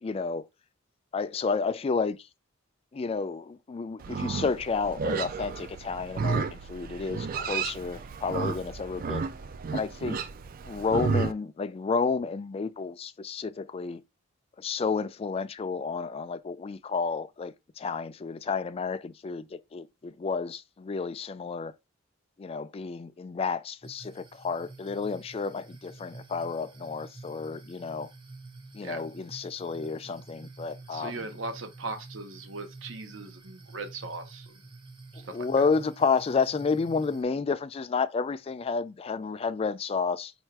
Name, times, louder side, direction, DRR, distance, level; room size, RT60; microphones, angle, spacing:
voice 1, 0.0-0.4 1.1-2.2 2.9-9.3 9.7-10.3 10.6-14.0 14.6-21.7 22.4-28.1 28.7-31.3 35.3-40.3, left 5 dB, 30° left, 0.3 m, -31 dB
Livestock farm animals working animals, 4.0-11.3, right 5 dB, 45° right, 0.4 m, -32 dB
sound 1, 23.8-37.2, right 3 dB, 25° right, 0.8 m, -48 dB
voice 2, 30.9-34.6 35.1-35.5, right 3 dB, 70° right, 0.9 m, -39 dB
4.4 x 2.4 x 4.6 m
head